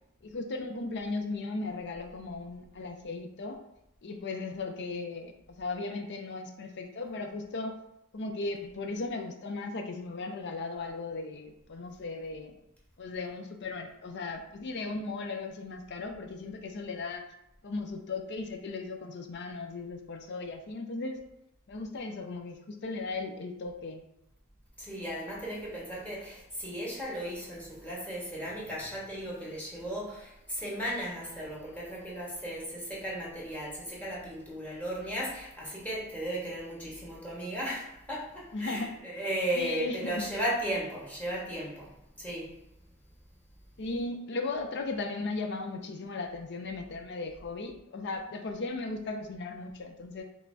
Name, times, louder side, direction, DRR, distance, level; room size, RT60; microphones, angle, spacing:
voice 1, 0.2-3.6 4.0-7.8 8.1-12.5 13.0-17.2 17.6-21.2 21.7-24.0 38.5-38.9 39.5-40.3 43.8-50.2, left 3 dB, 55° left, 5 dB, 0.5 m, -36 dB
voice 2, 24.8-41.9 42.2-42.6, right 1 dB, 5° left, -5 dB, 1.4 m, -36 dB
5.6 x 3.1 x 2.7 m, 0.84 s
head